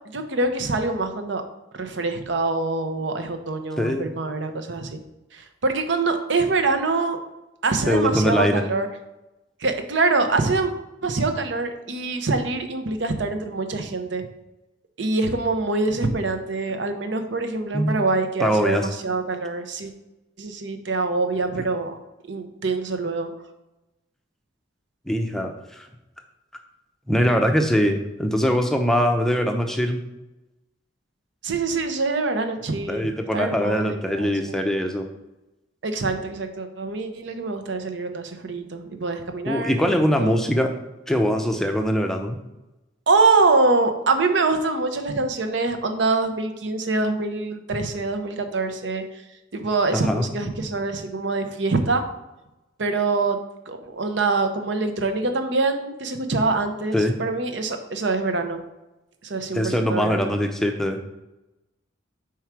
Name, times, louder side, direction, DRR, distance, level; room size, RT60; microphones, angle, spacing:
voice 1, 0.1-1.4 1.7-5.0 5.3-7.2 7.6-8.9 9.6-10.7 11.0-14.2 15.0-19.9 20.4-22.0 22.3-23.3 31.4-34.6 35.8-39.9 40.2-40.4 43.1-49.0 49.5-52.0 52.8-53.4 53.7-58.6 59.2-60.3, right 3 dB, 70° right, 7 dB, 0.8 m, -24 dB
voice 2, 3.8-4.1 7.9-8.6 17.7-18.0 18.4-18.9 25.1-25.9 27.1-30.0 32.9-35.1 39.5-40.7 41.1-42.4 49.9-50.3 56.9-57.2 59.5-61.0, equal, ahead, 4 dB, 0.6 m, -22 dB
4.7 x 4.7 x 5.9 m, 1.0 s
head